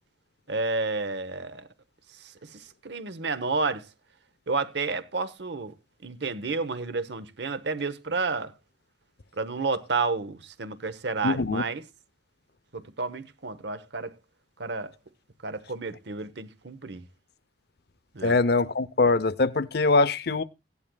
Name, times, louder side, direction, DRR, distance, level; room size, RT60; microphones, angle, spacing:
voice 1, 0.5-1.7 2.2-3.9 4.5-5.7 6.0-8.5 9.4-11.8 12.7-14.1 14.6-14.9 15.4-17.0 18.1-18.4, right 4 dB, 65° right, 0.9 m, -31 dB
voice 2, 11.2-11.6 18.2-20.4, left 3 dB, 55° left, 0.7 m, -23 dB
17.0 x 10.5 x 2.2 m
head